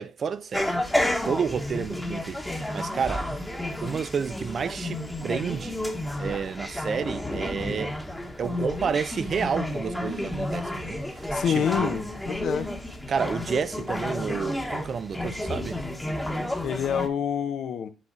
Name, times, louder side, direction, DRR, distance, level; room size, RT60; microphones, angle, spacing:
voice 1, 0.0-3.4 3.8-5.8 6.2-7.9 8.4-12.0 13.1-15.8, right 6 dB, 50° right, 0.5 m, -30 dB
sound 1, 0.5-17.1, left 1 dB, 5° left, 1.2 m, -31 dB
voice 2, 11.3-12.7 16.6-17.9, left 8 dB, 70° left, 0.9 m, -27 dB
6.5 x 4.0 x 4.8 m
cardioid pair, 90°, 0 cm